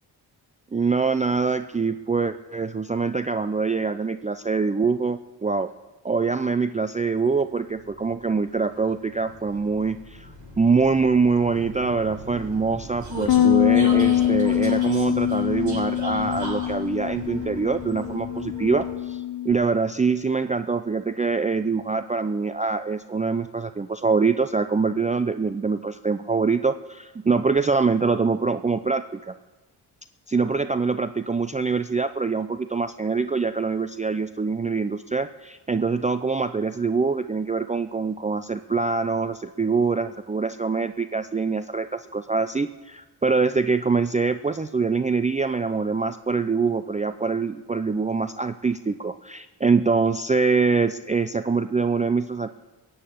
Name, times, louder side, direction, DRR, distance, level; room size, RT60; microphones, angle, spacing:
voice 1, 0.7-5.7 6.0-10.3 10.6-29.3 30.3-52.5, right 4 dB, 15° right, 11 dB, 0.5 m, -24 dB
Vehicle, 7.4-19.2, equal, 40° right, 6.1 m, -38 dB
Bass guitar, 13.3-19.5, left 12 dB, 55° left, 0.8 m, -23 dB
15.5 x 8.0 x 8.6 m, 1.2 s
supercardioid pair, 50°, 45 cm